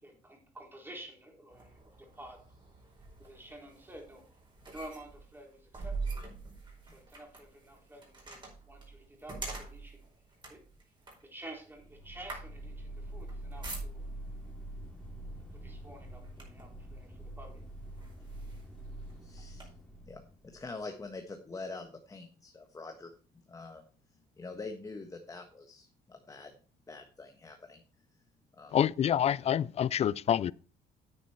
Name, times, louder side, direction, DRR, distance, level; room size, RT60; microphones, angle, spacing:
voice 1, 0.0-2.4 3.2-4.3 4.7-6.3 6.8-10.1 10.5-10.6 11.2-14.0 15.5-17.6, right 1 dB, 10° right, 4.0 m, -50 dB
sound 1, 1.5-14.3 15.2-15.4 15.8-16.8 17.4-17.5 18.0-19.6, right 3 dB, 25° right, 4.8 m, -45 dB
sound 2, 11.6-21.0, right 1 dB, 5° left, 2.5 m, -45 dB
voice 2, 19.2-19.7 20.0-23.1 23.5-23.8 24.4-26.5 26.9-27.8 28.6-28.8, left 3 dB, 20° left, 1.4 m, -45 dB
voice 3, 28.7-30.5, left 10 dB, 40° left, 0.4 m, -27 dB
9.9 x 8.2 x 4.5 m
cardioid pair, 110°, 17 cm